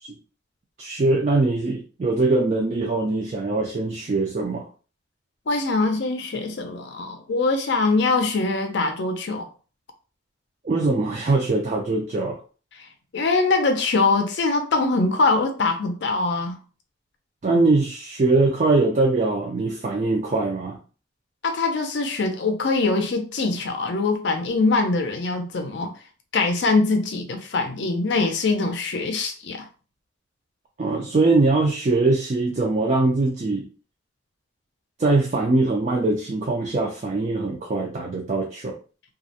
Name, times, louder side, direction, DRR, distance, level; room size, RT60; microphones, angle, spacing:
voice 1, 0.8-4.7 10.6-12.4 17.4-20.8 30.8-33.7 35.0-38.8, right 3 dB, 35° right, 0.4 m, -22 dB
voice 2, 5.5-9.5 12.7-12.9 13.1-16.6 21.4-25.9 26.3-29.7, left 3 dB, 65° left, 0.5 m, -23 dB
2.3 x 2.1 x 2.7 m
head